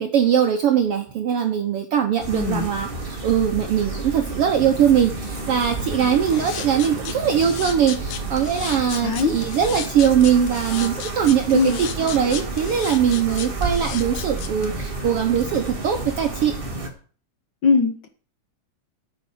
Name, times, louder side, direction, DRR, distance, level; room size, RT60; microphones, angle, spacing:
voice 1, 0.0-2.9 3.2-16.5, right 8 dB, 65° right, 4 dB, 1.6 m, -21 dB
sound 1, 2.2-16.9, right 3 dB, 25° right, 1.4 m, -31 dB
voice 2, 2.3-2.7 9.0-9.3 11.5-11.8 17.6-18.1, left 4 dB, 70° left, 7 dB, 1.0 m, -20 dB
sound 2, 6.3-14.7, left 9 dB, 90° left, 2.5 m, -35 dB
14.5 x 6.5 x 5.0 m, 0.42 s
omnidirectional pair, 3.4 m